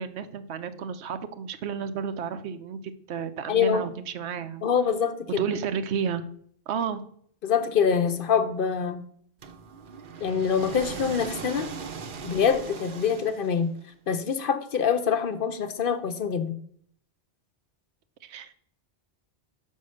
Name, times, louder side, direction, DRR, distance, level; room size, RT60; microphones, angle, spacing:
voice 1, 0.0-2.8 3.1-4.6 5.4-6.2 6.7-7.0 18.2-18.5, right 7 dB, 90° right, 11 dB, 0.9 m, -31 dB
voice 2, 3.5-3.9 4.6-5.4 7.4-9.0 10.2-11.7 12.2-13.7 14.1-16.5, left 7 dB, 60° left, 9 dB, 0.8 m, -25 dB
sound 1, 9.4-13.8, right 5 dB, 55° right, 0.8 m, -39 dB
5.5 x 5.5 x 6.3 m, 0.63 s
omnidirectional pair, 1.1 m